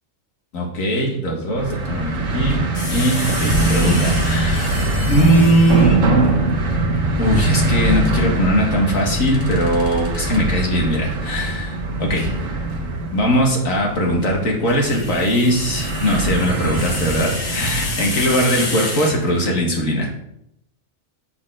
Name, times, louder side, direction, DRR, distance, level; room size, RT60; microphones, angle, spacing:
voice 1, 0.5-2.6 2.9-6.0 7.2-12.3 13.1-20.1, equal, 80° left, 0 dB, 2.1 m, -20 dB
sound 1, 1.6-18.8, right 2 dB, 75° right, 1.4 m, -22 dB
sound 2, 2.7-6.1 8.9-10.4 12.2-12.4 14.5-19.6, left 2 dB, 55° left, 1.6 m, -30 dB
sound 3, 2.8-3.2 3.6-4.3 4.9-5.3 5.7-6.4 7.0-7.3 7.8-8.3 9.1-11.2, right 1 dB, 40° right, 1.1 m, -39 dB
7.3 x 4.5 x 6.2 m, 0.79 s
omnidirectional pair, 1.4 m